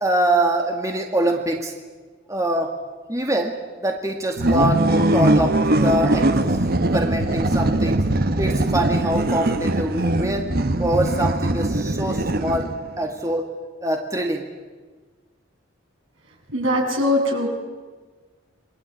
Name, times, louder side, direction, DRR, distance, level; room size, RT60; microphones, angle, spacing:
voice 1, 0.0-1.7 2.3-2.7 3.1-4.9 5.1-6.6 6.9-8.0 8.4-10.5 10.8-12.7 13.0-13.5 13.8-14.5, right 1 dB, 15° right, 2 dB, 2.1 m, -24 dB
sound 1, 4.4-12.9, right 1 dB, 50° right, 1.2 m, -21 dB
voice 2, 16.5-17.5, left 1 dB, 75° right, 0 dB, 7.9 m, -21 dB
28.0 x 23.5 x 8.7 m, 1.4 s
head